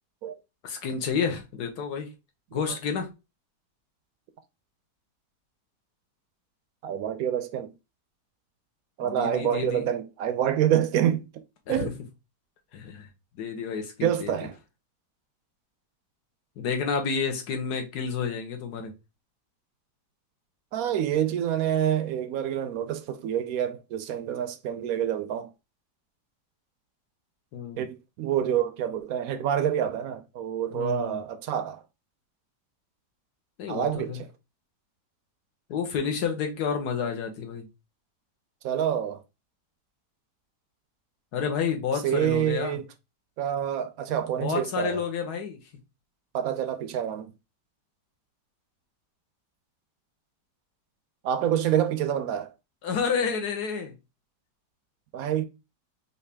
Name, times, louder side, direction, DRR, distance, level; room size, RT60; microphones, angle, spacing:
voice 1, 0.6-2.1 2.5-3.1 9.0-9.9 11.7-11.9 12.7-13.1 13.4-14.3 16.6-18.9 27.5-27.8 30.7-31.2 33.6-34.2 35.7-37.7 41.3-42.8 44.4-45.6 52.8-53.9, left 6 dB, 70° left, 1.5 m, -30 dB
voice 2, 6.8-7.7 9.0-11.3 11.7-11.9 14.0-14.6 20.7-25.5 27.8-31.8 33.7-34.2 38.6-39.2 42.0-42.9 43.4-45.0 46.3-47.3 51.2-52.5 55.1-55.4, right 10 dB, 70° right, 0.9 m, -27 dB
4.7 x 2.7 x 3.3 m
omnidirectional pair, 1.8 m